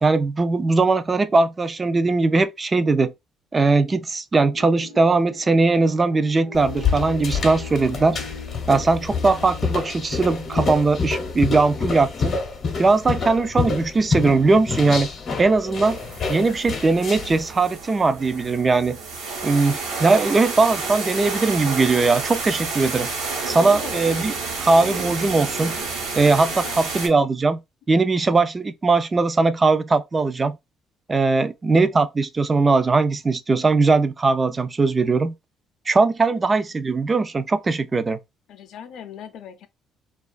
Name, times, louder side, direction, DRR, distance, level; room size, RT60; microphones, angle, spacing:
voice 1, 0.0-3.1 3.5-8.2 8.7-12.4 12.8-15.1 15.4-16.0 16.3-19.0 19.4-23.1 23.5-24.3 24.6-25.8 26.2-27.6 27.9-30.6 31.1-35.3 35.9-38.2, right 3 dB, 30° right, 0.3 m, -20 dB
sound 1, 4.5-10.7, left 2 dB, 50° right, 1.0 m, -41 dB
sound 2, 6.5-17.4, left 5 dB, 55° left, 0.8 m, -27 dB
sound 3, 15.8-27.1, right 4 dB, 80° right, 1.0 m, -30 dB
voice 2, 23.6-24.1 26.6-26.8 36.3-36.4 38.5-39.7, left 8 dB, 70° left, 0.4 m, -39 dB
2.3 x 2.3 x 2.3 m
supercardioid pair, 70°, 0 cm